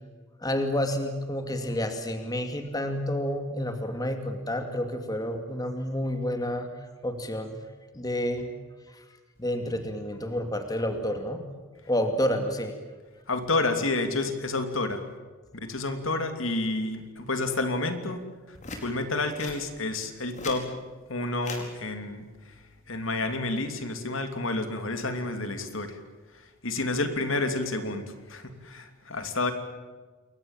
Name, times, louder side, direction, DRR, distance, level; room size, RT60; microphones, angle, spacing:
voice 1, 0.4-6.7 7.0-7.6 7.9-8.5 8.9-9.0 9.4-11.4 11.9-12.8, equal, 20° left, 6 dB, 2.4 m, -29 dB
voice 2, 13.3-15.0 15.6-18.2 18.5-18.6 18.8-20.7 21.1-22.2 22.9-26.0 26.6-29.5, left 2 dB, 65° left, 7 dB, 3.0 m, -29 dB
sound 1, 18.6-18.9 19.4-19.6 20.2-20.6 21.4-21.7 23.0-23.2, left 3 dB, 35° left, 4.8 m, -39 dB
28.5 x 23.0 x 7.4 m, 1.4 s
head